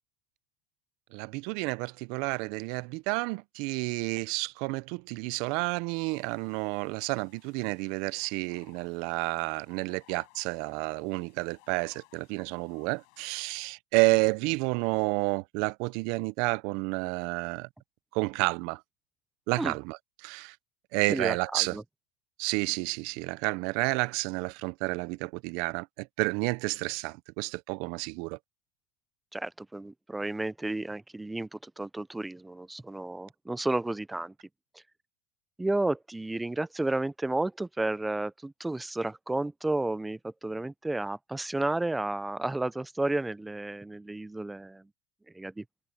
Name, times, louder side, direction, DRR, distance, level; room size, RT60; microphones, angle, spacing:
voice 1, 1.1-17.7 18.1-18.8 19.5-20.6 20.9-21.8 22.4-28.4, right 26 dB, 65° right, 0.5 m, -30 dB
sound 1, 6.1-13.4, left 40 dB or more, 70° left, 6.4 m, -61 dB
voice 2, 21.1-21.8 29.3-34.3 35.6-44.8 45.3-45.6, right 2 dB, 10° right, 0.5 m, -32 dB
supercardioid pair, 115°, 0 cm